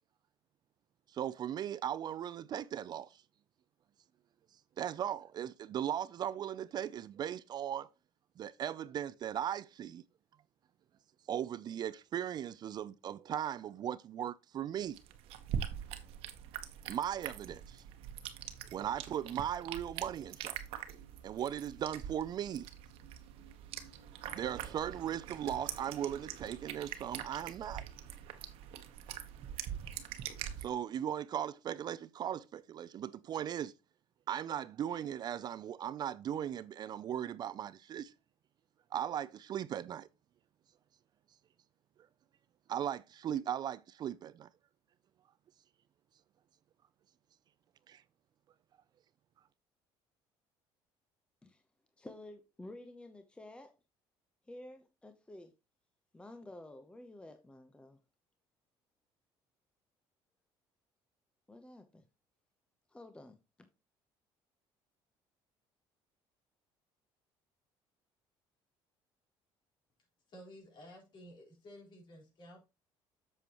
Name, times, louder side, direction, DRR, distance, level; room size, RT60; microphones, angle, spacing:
voice 1, 1.1-3.2 4.8-7.9 8.4-10.0 11.3-15.0 16.9-17.8 18.7-20.6 21.2-22.7 24.3-27.8 30.6-33.7 34.3-38.1 38.9-40.1 42.7-44.5 47.9-48.0, right 10 dB, 45° right, 0.4 m, -38 dB
sound 1, 14.8-30.6, right 9 dB, 75° right, 1.1 m, -44 dB
voice 2, 52.0-53.7 54.5-55.5 56.1-58.0 61.5-62.0 62.9-63.7, left 1 dB, 10° left, 0.8 m, -51 dB
voice 3, 70.3-72.6, equal, 50° left, 4.5 m, -53 dB
8.1 x 7.1 x 3.0 m
cardioid pair, 115°, 10 cm